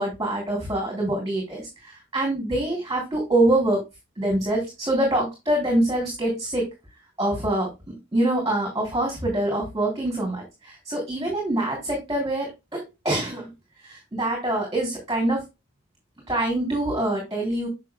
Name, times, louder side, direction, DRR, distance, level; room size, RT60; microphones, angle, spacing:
voice 1, 0.0-3.8 4.2-6.7 7.2-7.7 8.1-13.5 13.8-15.4 16.3-17.7, right 1 dB, 20° right, 0 dB, 3.2 m, -25 dB
7.5 x 6.4 x 2.2 m, 0.22 s
head